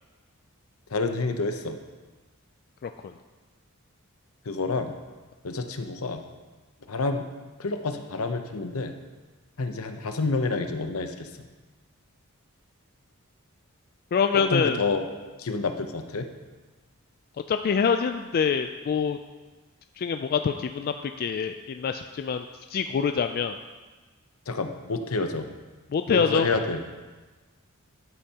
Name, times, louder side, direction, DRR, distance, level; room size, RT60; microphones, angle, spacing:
voice 1, 0.9-1.8 4.5-4.9 5.4-6.2 6.9-7.2 7.6-8.9 9.6-11.3 14.3-15.0 15.4-16.3 24.5-25.5 26.1-26.8, left 3 dB, 75° left, 6 dB, 0.8 m, -28 dB
voice 2, 2.8-3.1 14.1-14.8 17.5-19.2 20.0-23.5 25.9-26.5, left 6 dB, 45° left, 8 dB, 0.3 m, -25 dB
12.5 x 8.8 x 2.9 m, 1.3 s
head